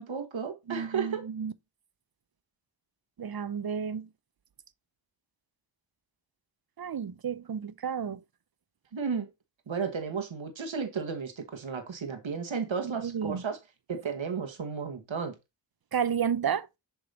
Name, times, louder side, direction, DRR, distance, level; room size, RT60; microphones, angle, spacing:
voice 1, 0.0-1.3 8.9-9.3 9.7-13.6 13.9-15.3, right 5 dB, 80° right, 1.2 m, -33 dB
voice 2, 0.7-1.5 3.2-4.1 6.8-8.2 12.8-13.4 15.9-16.7, right 7 dB, 50° right, 0.6 m, -31 dB
7.0 x 3.6 x 4.0 m
wide cardioid pair, 40°, 46 cm